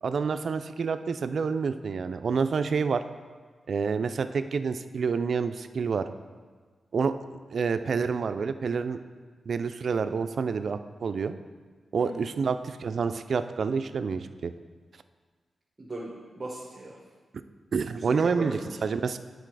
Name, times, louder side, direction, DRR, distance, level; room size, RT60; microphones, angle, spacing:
voice 1, 0.0-3.0 3.7-6.1 6.9-7.2 7.5-9.0 9.5-11.3 11.9-14.5 17.7-19.2, right 5 dB, 60° right, 11 dB, 0.3 m, -28 dB
voice 2, 12.0-12.3 15.8-17.0 18.0-18.7, right 1 dB, 30° right, -4 dB, 1.1 m, -38 dB
8.9 x 3.9 x 4.8 m, 1.5 s
wide cardioid pair, 105°, 0 cm